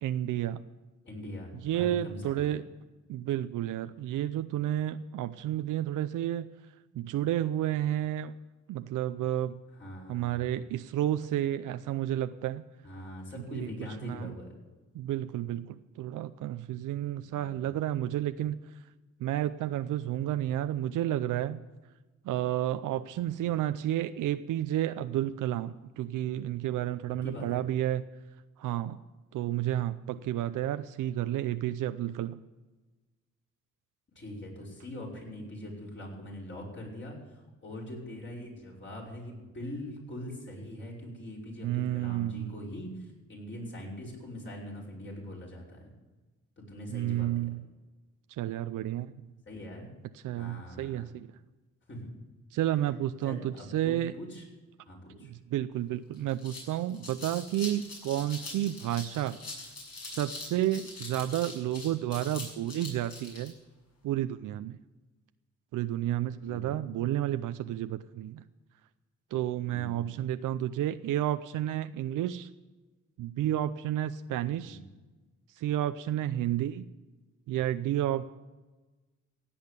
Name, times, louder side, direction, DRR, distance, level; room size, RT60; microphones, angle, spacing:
voice 1, 0.0-0.6 1.6-2.6 3.1-6.5 6.9-8.3 8.7-9.6 10.1-12.6 13.5-13.7 14.0-14.3 14.9-18.6 19.2-21.6 22.2-28.0 28.6-29.0 29.3-32.4 41.6-42.5 46.9-47.6 48.4-49.1 50.2-51.3 52.5-54.1 55.2-59.4 60.0-63.5 64.0-64.8 65.7-68.4 69.3-72.5 73.2-74.8 75.5-76.9 77.5-78.2, right 12 dB, 80° right, 11 dB, 0.6 m, -31 dB
voice 2, 1.0-2.6 9.8-10.4 12.8-14.5 17.2-17.7 23.1-23.6 27.2-27.6 34.2-45.9 46.6-47.5 49.5-49.9 50.4-51.1 51.9-52.1 53.2-54.5 54.8-55.3 66.4-66.8 69.7-70.1 74.6-74.9, left 1 dB, 40° left, -3 dB, 5.4 m, -42 dB
sound 1, 55.7-55.8 56.1-63.5, left 2 dB, 60° left, 6.6 m, -43 dB
16.5 x 8.7 x 8.3 m, 1.2 s
cardioid pair, 105°, 30 cm